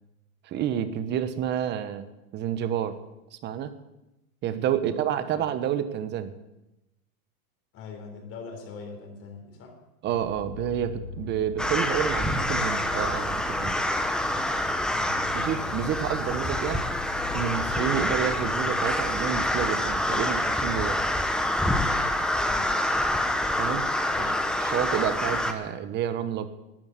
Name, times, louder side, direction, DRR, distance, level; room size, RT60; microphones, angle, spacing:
voice 1, 0.4-2.1 2.3-3.0 3.4-3.7 4.4-6.3 10.0-13.8 15.3-16.8 17.3-21.0 23.6-23.9 24.6-26.5, right 10 dB, 25° right, 12 dB, 1.0 m, -29 dB
voice 2, 7.7-9.8 14.9-15.2 22.4-22.8 24.1-24.5, left 5 dB, 30° left, 4 dB, 3.7 m, -42 dB
sound 1, 10.0-18.9, left 3 dB, 75° left, 3.1 m, -41 dB
sound 2, 11.6-25.5, left 1 dB, ahead, 0.8 m, -26 dB
12.5 x 10.5 x 8.3 m, 0.94 s
hypercardioid pair, 135°, 43 cm